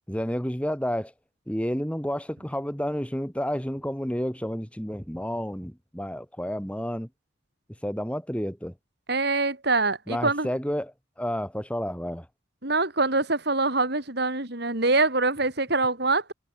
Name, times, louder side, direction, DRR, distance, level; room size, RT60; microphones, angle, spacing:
voice 1, 0.1-1.1 1.5-7.1 7.8-8.7 10.1-12.3, equal, 5° left, 5.0 m, -30 dB
voice 2, 9.1-10.5 12.6-16.3, right 3 dB, 55° right, 3.9 m, -24 dB
head